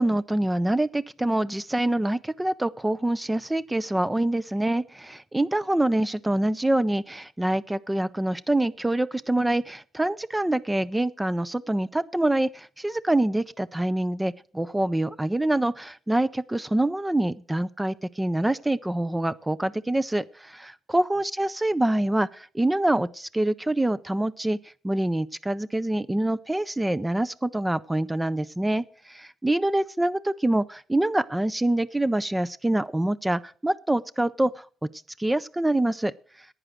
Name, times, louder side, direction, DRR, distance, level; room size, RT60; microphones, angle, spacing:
voice 1, 0.0-34.9 35.2-36.5, right 1 dB, 10° right, 16 dB, 0.4 m, -25 dB
11.0 x 8.9 x 6.4 m, 0.42 s
cardioid pair, 90°, 0 cm